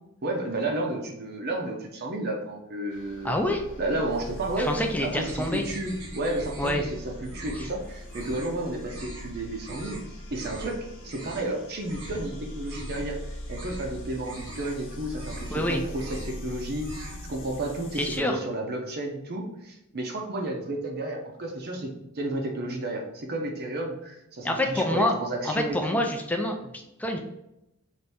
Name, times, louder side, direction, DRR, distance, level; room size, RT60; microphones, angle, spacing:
voice 1, 0.2-3.3 3.8-4.7 5.0-10.0 10.3-26.0, right 1 dB, 45° right, 1 dB, 0.6 m, -32 dB
sound 1, 2.9-18.2, left 1 dB, 60° left, 0.6 m, -41 dB
voice 2, 3.2-3.6 4.6-5.6 6.6-6.8 15.5-15.8 18.0-18.4 24.4-25.1 25.4-26.7 27.0-27.2, left 1 dB, 5° left, 2 dB, 0.4 m, -26 dB
sound 2, 5.3-6.9 7.2-7.8 8.1-8.5 8.9-9.3 9.6-10.0 10.3-10.7 11.0-11.5 11.8-12.2 12.6-13.2 13.5-13.9 14.2-14.7 15.1-15.6 15.9-16.4 16.7-17.3, right 1 dB, 85° right, 1.3 m, -42 dB
3.4 x 2.6 x 4.1 m, 0.87 s
head